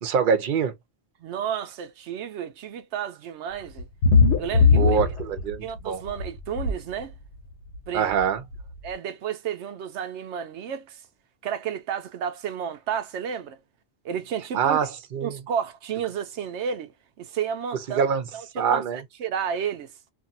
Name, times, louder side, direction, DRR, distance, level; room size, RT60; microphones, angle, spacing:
voice 1, 0.0-0.7 4.8-6.0 7.9-8.4 14.5-15.4 17.9-18.2 18.5-19.0, right 7 dB, 55° right, 0.8 m, -24 dB
voice 2, 1.2-3.9 4.4-5.0 5.6-7.1 7.9-8.1 8.8-11.0 11.4-13.6 14.0-14.8 15.2-18.1 18.3-19.9, right 8 dB, 90° right, 0.9 m, -32 dB
sound 1, 3.8-5.8 6.1-6.7 7.7-7.8 8.2-8.3 8.5-8.6, left 5 dB, 85° left, 1.3 m, -19 dB
2.7 x 2.6 x 2.6 m
omnidirectional pair, 1.1 m